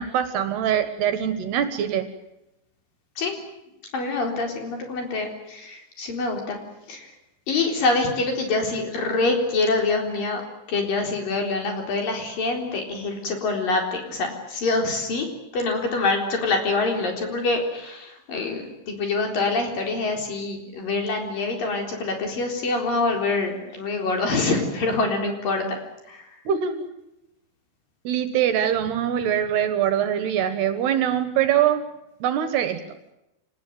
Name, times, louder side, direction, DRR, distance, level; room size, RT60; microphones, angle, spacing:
voice 1, 0.0-2.1 26.5-26.8 28.0-31.8 32.2-32.8, right 9 dB, 70° right, 10 dB, 3.1 m, -23 dB
voice 2, 3.9-6.6 6.9-7.1 7.5-10.4 10.7-15.3 15.5-25.8 26.1-26.3, left 3 dB, 50° left, 2 dB, 5.5 m, -25 dB
27.0 x 19.0 x 9.3 m, 0.91 s
omnidirectional pair, 5.3 m